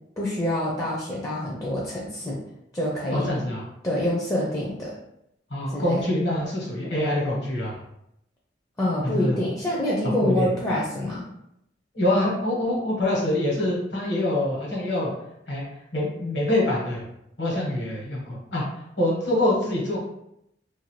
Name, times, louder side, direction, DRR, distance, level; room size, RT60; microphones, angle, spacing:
voice 1, 0.2-2.4 2.7-3.4 3.8-5.0 5.7-6.0 8.8-11.3, left 1 dB, 15° left, -5 dB, 0.4 m, -26 dB
voice 2, 3.1-3.6 5.5-7.8 9.0-9.4 10.0-10.5 11.9-15.1 15.5-15.6 15.9-17.0 17.4-18.6 19.0-20.0, left 1 dB, 65° left, -4 dB, 1.2 m, -25 dB
2.6 x 2.6 x 3.1 m, 0.80 s
head